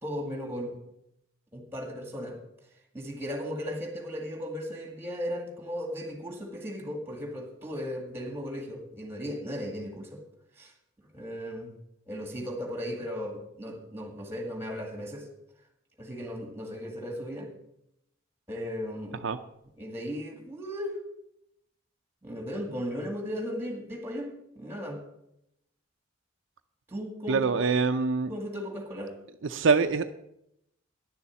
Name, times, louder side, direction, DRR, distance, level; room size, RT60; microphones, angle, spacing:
voice 1, 0.0-0.8 1.5-2.4 2.9-10.2 10.6-10.7 11.1-11.7 12.1-15.3 16.0-17.5 18.5-19.3 19.8-21.0 22.2-25.0 26.9-27.6 28.3-29.1, equal, 10° right, 4 dB, 2.0 m, -36 dB
voice 2, 27.3-28.3 29.5-30.1, right 4 dB, 65° right, 8 dB, 0.5 m, -24 dB
10.5 x 7.0 x 7.4 m, 0.79 s
head